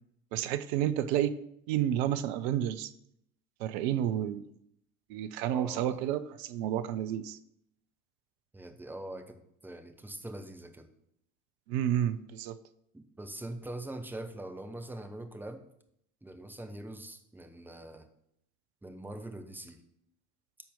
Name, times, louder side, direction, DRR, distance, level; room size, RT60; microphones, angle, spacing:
voice 1, 0.3-1.4 1.7-2.9 3.6-4.5 5.1-7.4 11.7-12.6, right 11 dB, 50° right, 13 dB, 0.6 m, -30 dB
voice 2, 5.5-6.0 8.5-10.9 12.9-15.6 16.2-18.1 18.8-19.8, right 1 dB, 5° right, 6 dB, 0.8 m, -43 dB
12.5 x 4.3 x 3.7 m, 0.75 s
figure-of-eight pair, 70°, 41 cm